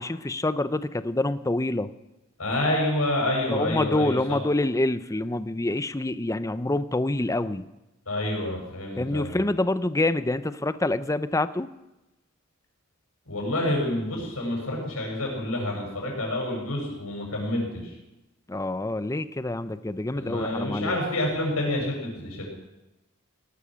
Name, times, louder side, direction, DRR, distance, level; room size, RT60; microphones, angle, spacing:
voice 1, 0.0-1.9 3.5-7.7 9.0-11.7 18.5-21.0, left 2 dB, 15° left, 13 dB, 0.6 m, -26 dB
voice 2, 2.4-4.4 8.0-9.4 13.2-17.9 20.1-22.4, left 1 dB, 90° left, 0 dB, 6.9 m, -28 dB
18.5 x 12.0 x 6.3 m, 0.97 s
head